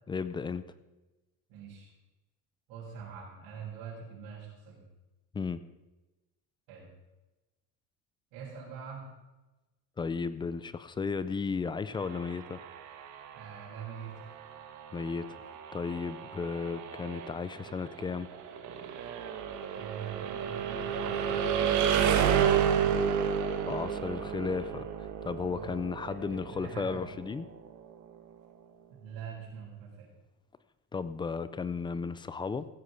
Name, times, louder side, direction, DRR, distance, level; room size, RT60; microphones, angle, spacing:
voice 1, 0.1-0.6 5.3-5.6 10.0-12.6 14.9-15.3 15.7-18.3 23.7-27.5 30.9-32.7, left 5 dB, 15° left, 14 dB, 0.4 m, -34 dB
voice 2, 1.5-1.9 2.7-4.8 6.7-6.9 8.3-9.1 13.3-14.1 19.8-21.8 22.1-23.1 25.5-25.7 26.3-27.0 28.9-30.1, right 7 dB, 70° right, -9 dB, 6.0 m, -44 dB
sound 1, 12.0-27.8, right 8 dB, 50° right, 1.4 m, -32 dB
16.0 x 8.2 x 5.8 m, 1.1 s
cardioid pair, 145°, 39 cm